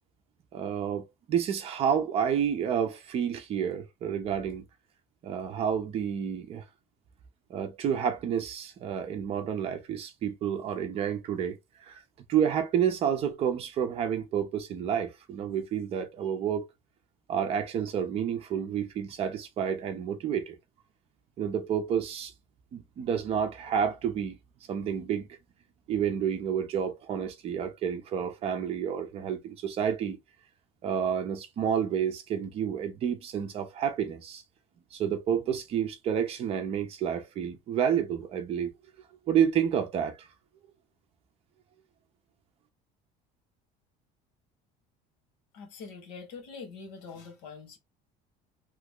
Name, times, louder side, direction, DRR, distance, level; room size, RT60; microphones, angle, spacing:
voice 1, 0.5-4.6 5.2-6.6 7.5-12.0 12.3-16.7 17.3-20.6 21.4-22.3 22.7-24.4 24.7-25.3 25.9-30.2 30.8-34.4 34.9-38.7 39.3-40.3, right 8 dB, 35° right, 0.7 m, -29 dB
voice 2, 45.5-47.8, left 5 dB, 75° left, 1.5 m, -44 dB
3.1 x 2.3 x 3.6 m
cardioid pair, 165°, 17 cm